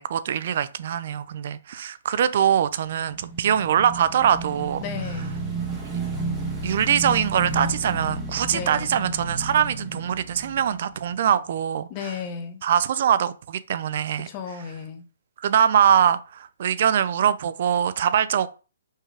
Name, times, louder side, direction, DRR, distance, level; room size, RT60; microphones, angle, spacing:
voice 1, 0.0-4.8 6.6-12.1 12.6-14.3 15.4-18.5, right 9 dB, 50° right, 0.6 m, -23 dB
Motorcycle / Engine, 3.0-11.4, right 3 dB, 10° right, 1.6 m, -32 dB
voice 2, 4.8-5.5 8.5-9.0 11.9-12.6 14.2-15.1, left 6 dB, 25° left, 1.1 m, -34 dB
5.5 x 3.7 x 5.0 m
hypercardioid pair, 155°, 0 cm